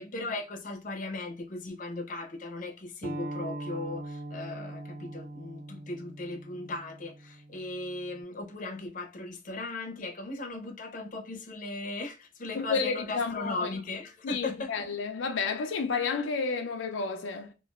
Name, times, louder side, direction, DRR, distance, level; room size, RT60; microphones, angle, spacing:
voice 1, 0.0-14.9, left 2 dB, 45° left, 0.6 m, -37 dB
sound 1, 3.0-8.2, right 1 dB, 50° right, 0.3 m, -41 dB
voice 2, 12.5-13.7 14.2-17.5, left 5 dB, 90° left, 0.5 m, -31 dB
2.9 x 2.4 x 2.3 m
head